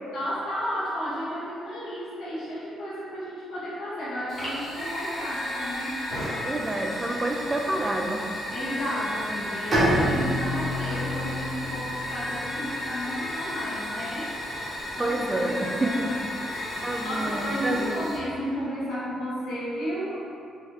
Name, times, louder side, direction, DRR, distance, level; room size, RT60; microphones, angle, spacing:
voice 1, 0.1-5.9 8.5-14.3 14.6-16.2 17.0-20.2, equal, 90° left, -14 dB, 1.0 m, -33 dB
Fire, 4.3-18.2, left 1 dB, 30° left, 1.5 m, -34 dB
sound 1, 5.1-18.7, left 1 dB, 55° left, 0.9 m, -40 dB
voice 2, 6.4-8.2 15.0-16.3 16.8-18.0, right 1 dB, 25° right, 2 dB, 0.4 m, -28 dB
Bowed string instrument, 9.7-13.3, equal, 40° right, 1.3 m, -28 dB
4.4 x 2.5 x 2.3 m, 2.5 s
cardioid pair, 90°, 0 cm